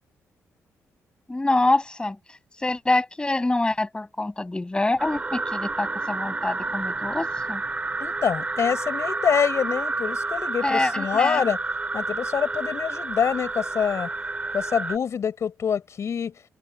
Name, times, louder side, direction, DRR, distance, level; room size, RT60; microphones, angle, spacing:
voice 1, 1.3-7.6 10.6-11.4, left 2 dB, 15° left, 5.9 m, -25 dB
sound 1, 5.0-15.0, right 3 dB, 25° right, 2.3 m, -30 dB
voice 2, 8.0-11.6 11.9-14.1 14.5-16.3, left 7 dB, 60° left, 6.6 m, -25 dB
open air
cardioid pair, 85°, 6 cm